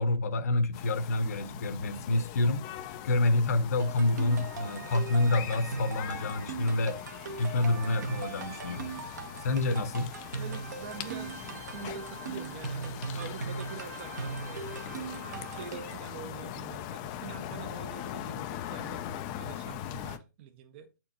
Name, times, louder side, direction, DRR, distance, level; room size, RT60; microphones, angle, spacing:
voice 1, 0.0-2.7 3.0-7.0 7.4-8.9 9.4-10.1, left 2 dB, 50° left, 0.9 m, -28 dB
sound 1, 0.7-20.2, left 11 dB, 25° left, 0.4 m, -41 dB
sound 2, 3.8-16.1, right 5 dB, 60° right, 1.4 m, -40 dB
voice 2, 10.3-20.9, right 7 dB, 35° right, 0.7 m, -46 dB
7.4 x 4.4 x 2.8 m
hypercardioid pair, 140°, 10 cm